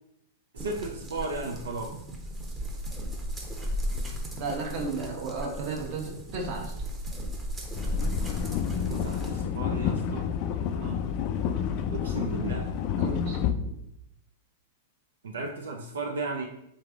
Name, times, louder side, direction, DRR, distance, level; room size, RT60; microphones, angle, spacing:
voice 1, 0.5-1.9 8.9-10.3 11.9-12.7 15.2-16.5, right 3 dB, 85° right, 1 dB, 0.5 m, -34 dB
sound 1, 0.6-9.4, equal, 15° right, 0.8 m, -35 dB
voice 2, 4.4-6.7 10.8-11.0 13.0-13.8, right 3 dB, 50° right, 1 dB, 1.1 m, -34 dB
sound 2, 7.7-13.5, left 8 dB, 45° left, 0.3 m, -29 dB
3.6 x 3.2 x 3.5 m, 0.78 s
hypercardioid pair, 125°, 0 cm